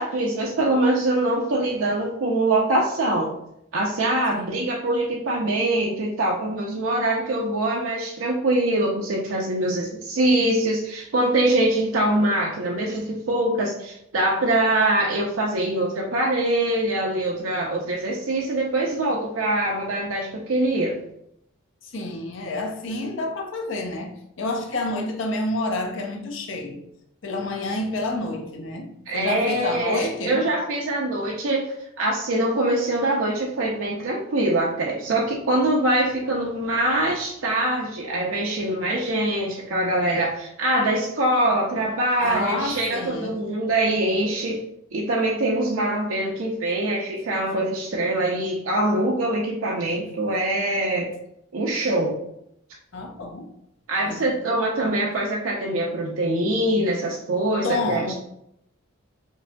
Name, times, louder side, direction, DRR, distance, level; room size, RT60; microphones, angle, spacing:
voice 1, 0.0-3.3 3.7-21.0 29.1-31.7 32.0-44.6 44.9-51.1 51.5-52.2 53.9-58.1, right 1 dB, 80° right, 0.5 m, -23 dB
voice 2, 21.8-26.8 27.2-30.4 42.2-43.4 52.9-53.5 54.0-54.4 57.6-58.1, left 2 dB, 70° left, 0.6 m, -29 dB
4.7 x 2.6 x 2.2 m
head